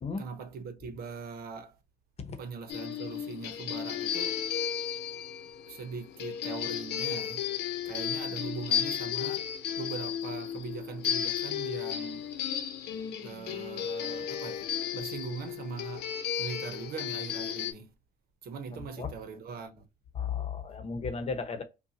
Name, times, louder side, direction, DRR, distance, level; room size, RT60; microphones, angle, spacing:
voice 1, 0.2-1.7 2.4-4.4 5.7-7.4 7.8-12.3 13.2-17.9 18.4-19.9, right 5 dB, 65° right, 1.0 m, -41 dB
sound 1, 2.7-17.7, left 9 dB, 80° left, 0.8 m, -34 dB
voice 2, 18.7-19.1 20.1-21.6, left 5 dB, 40° left, 1.0 m, -35 dB
5.3 x 2.3 x 2.8 m
cardioid pair, 110°, 17 cm